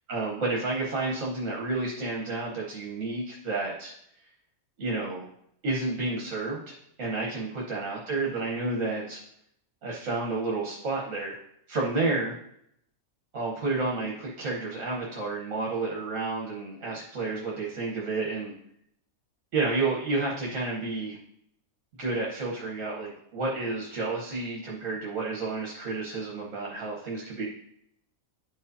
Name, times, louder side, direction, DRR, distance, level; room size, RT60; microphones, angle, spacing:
voice 1, 0.1-3.9 4.8-5.3 5.6-9.2 9.8-11.3 11.7-12.4 13.3-18.5 19.5-21.2 22.0-27.5, right 3 dB, 65° right, -3 dB, 1.5 m, -30 dB
10.5 x 4.8 x 2.7 m, 0.72 s
omnidirectional pair, 1.5 m